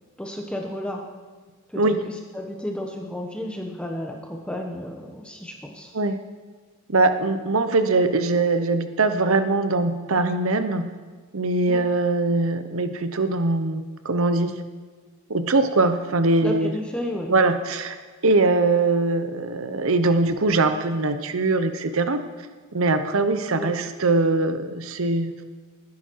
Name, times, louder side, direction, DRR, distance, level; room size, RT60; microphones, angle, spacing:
voice 1, 0.2-1.0 1.7-5.9 11.7-11.8 16.4-17.3 23.5-23.7, equal, 5° left, 1 dB, 1.0 m, -32 dB
voice 2, 6.9-10.9 11.3-14.6 15.3-16.7 17.3-18.0 18.2-22.2 22.7-25.4, right 3 dB, 75° right, 9 dB, 0.9 m, -22 dB
19.5 x 10.5 x 4.7 m, 1.4 s
head